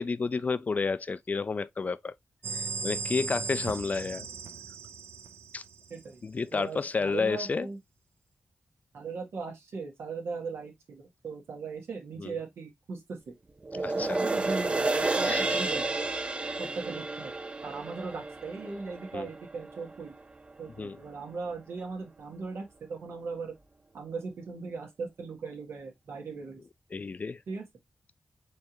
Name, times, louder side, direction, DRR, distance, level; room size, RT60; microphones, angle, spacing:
voice 1, 0.0-2.1 2.5-4.3 5.5-5.6 6.2-7.7 12.2-12.4 13.8-14.2 15.2-15.6 19.1-19.3 20.8-21.0 26.9-27.4, left 4 dB, 40° left, 0.3 m, -31 dB
sound 1, 2.4-6.1, right 4 dB, 70° right, 0.7 m, -37 dB
voice 2, 5.9-6.2 6.5-7.8 8.9-13.3 13.7-15.9 16.6-17.3 17.6-20.1 20.6-23.5 23.9-26.6 27.5-27.6, right 4 dB, 90° right, 1.7 m, -38 dB
sound 2, 13.6-20.2 20.7-20.8, right 2 dB, 25° right, 0.5 m, -31 dB
4.5 x 3.3 x 2.9 m
wide cardioid pair, 85°, 4 cm